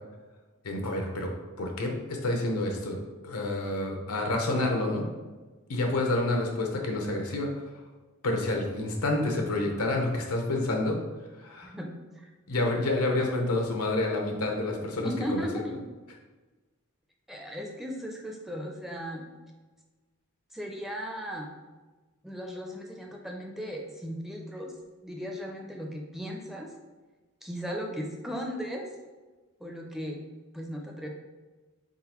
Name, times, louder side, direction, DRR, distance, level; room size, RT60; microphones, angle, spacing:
voice 1, 0.6-1.3 1.6-5.1 5.7-7.5 8.2-11.0 11.4-11.7 12.5-15.5, left 2 dB, 90° left, 2 dB, 0.8 m, -28 dB
voice 2, 11.6-12.3 15.0-15.8 17.3-19.2 20.5-21.5 22.2-24.7 25.0-26.7 27.4-28.9 29.6-30.2 30.5-31.1, equal, ahead, 0 dB, 0.4 m, -36 dB
4.0 x 3.8 x 3.0 m, 1.2 s
head